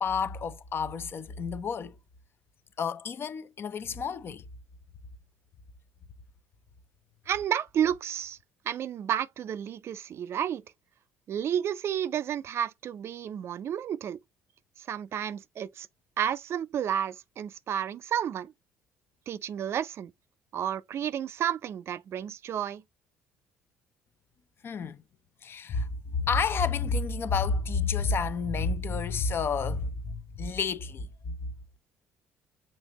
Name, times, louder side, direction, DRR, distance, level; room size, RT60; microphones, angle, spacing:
voice 1, 0.0-2.0 2.8-4.4 24.6-25.0 25.4-25.9 26.2-31.5, left 5 dB, 45° left, 0.6 m, -30 dB
voice 2, 7.3-8.4 8.7-10.6 11.3-14.2 14.9-15.9 16.2-18.5 19.3-20.1 20.5-22.8, right 9 dB, 50° right, 0.4 m, -31 dB
6.5 x 2.8 x 2.9 m
hypercardioid pair, 60°, 5 cm